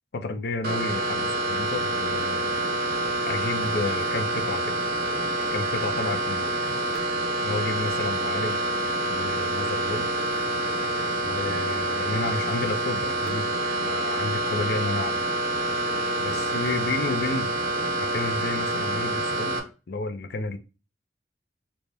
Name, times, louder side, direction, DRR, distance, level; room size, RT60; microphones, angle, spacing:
voice 1, 0.1-2.5 3.3-4.7 5.5-6.5 7.4-8.6 9.1-10.1 11.2-13.6 13.9-15.2 16.2-17.5 18.0-19.6 19.9-20.6, left 3 dB, 60° left, 9 dB, 0.5 m, -31 dB
sound 1, 0.6-19.6, right 1 dB, 55° right, 0.7 m, -27 dB
4.0 x 2.2 x 3.3 m, 0.31 s
head